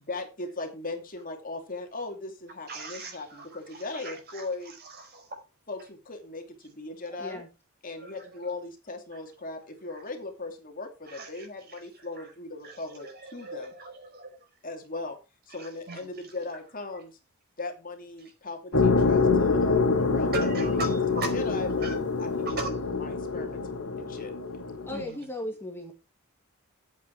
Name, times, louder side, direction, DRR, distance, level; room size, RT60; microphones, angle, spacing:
voice 1, 0.1-4.7 5.7-7.4 7.8-13.7 14.6-15.2 15.5-17.2 17.6-20.5 21.1-21.9 22.2-22.6 23.0-24.3, left 3 dB, 40° left, 2.6 m, -38 dB
voice 2, 2.7-5.4 7.3-7.4 8.0-8.4 11.1-12.3 12.6-14.5 15.5-16.1 20.3-21.3 21.8-22.0 22.4-22.7 24.9-25.2, right 3 dB, 45° right, 4.8 m, -39 dB
sound 1, 18.7-25.0, left 4 dB, 80° left, 2.4 m, -25 dB
voice 3, 24.9-25.9, left 1 dB, 10° left, 1.9 m, -36 dB
11.0 x 8.3 x 4.6 m
head